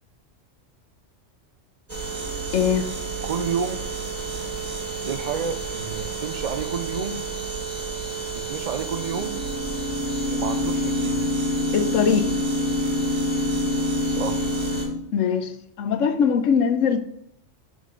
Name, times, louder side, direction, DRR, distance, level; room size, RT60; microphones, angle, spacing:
sound 1, 1.9-14.9, right 4 dB, 30° right, 1.5 m, -31 dB
sound 2, 2.2-2.8 8.8-15.0, left 2 dB, 60° left, 1.4 m, -26 dB
voice 1, 2.5-2.9 11.7-12.3 15.1-15.5 15.8-17.0, left 7 dB, 90° left, 1.1 m, -21 dB
voice 2, 3.2-3.8 5.0-7.3 8.3-9.4 10.3-11.3 14.0-14.4, right 6 dB, 65° right, 0.4 m, -30 dB
6.4 x 5.4 x 3.8 m
omnidirectional pair, 1.3 m